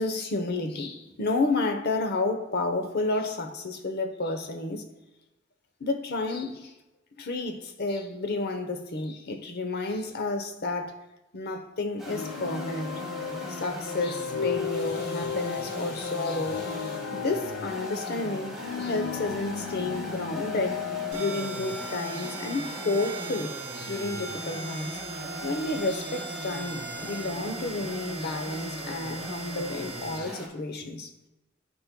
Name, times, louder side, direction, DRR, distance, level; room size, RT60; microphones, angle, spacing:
voice 1, 0.0-4.8 5.8-6.7 7.2-11.0 11.3-12.9 13.5-25.0 25.4-31.1, left 2 dB, 55° left, 0.8 m, -31 dB
sound 1, 12.0-30.5, right 1 dB, ahead, 1.8 m, -40 dB
sound 2, 12.1-23.3, left 7 dB, 85° left, 0.4 m, -35 dB
sound 3, 21.1-30.2, right 3 dB, 60° right, 2.3 m, -39 dB
12.5 x 4.4 x 2.2 m
head